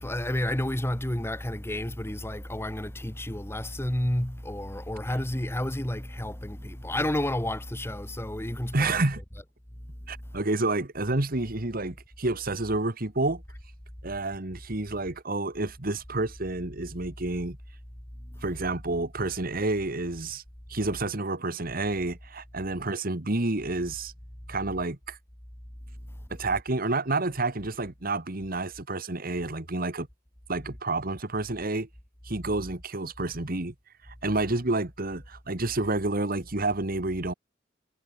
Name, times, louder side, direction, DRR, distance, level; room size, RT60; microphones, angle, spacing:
voice 1, 0.0-9.0 18.3-18.4, left 1 dB, 15° left, 1.7 m, -31 dB
voice 2, 8.7-9.2 10.1-13.4 14.0-17.6 18.4-20.4 20.7-24.1 24.5-25.2 26.3-30.1 30.5-31.9 32.2-33.7 34.1-37.3, right 2 dB, 50° right, 1.9 m, -29 dB
head